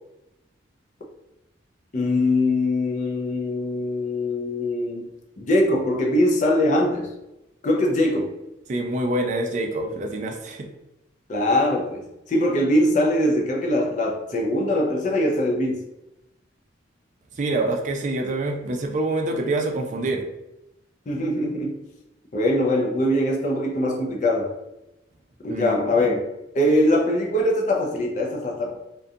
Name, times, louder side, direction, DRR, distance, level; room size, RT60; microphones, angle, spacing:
voice 1, 1.9-5.1 5.4-7.1 7.6-8.3 11.3-15.8 21.1-21.8 22.3-24.5 25.4-26.3 26.5-28.8, left 1 dB, 40° left, 0 dB, 0.4 m, -22 dB
voice 2, 8.7-10.7 17.3-20.2 25.5-25.9, right 2 dB, 40° right, 3 dB, 0.3 m, -26 dB
2.4 x 2.2 x 2.6 m, 0.92 s
head